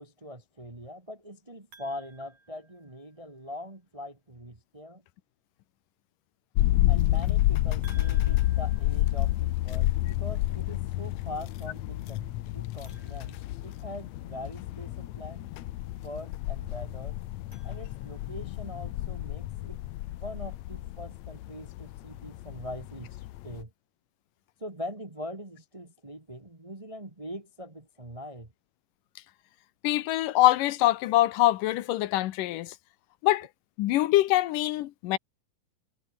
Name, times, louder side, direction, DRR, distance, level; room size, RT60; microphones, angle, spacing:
voice 1, 0.0-5.0 6.9-15.5 16.0-17.2 17.6-19.8 20.2-23.7 24.6-28.5, left 1 dB, 20° right, 0.8 m, -42 dB
sound 1, 1.7-3.4 7.8-9.9 12.7-14.4 17.3-18.5, right 4 dB, 80° right, 9.3 m, -58 dB
sound 2, 6.6-23.6, left 16 dB, 70° left, 1.7 m, -30 dB
voice 2, 29.8-32.7 33.2-33.5 33.8-35.2, left 15 dB, 90° left, 2.6 m, -24 dB
omnidirectional pair, 3.7 m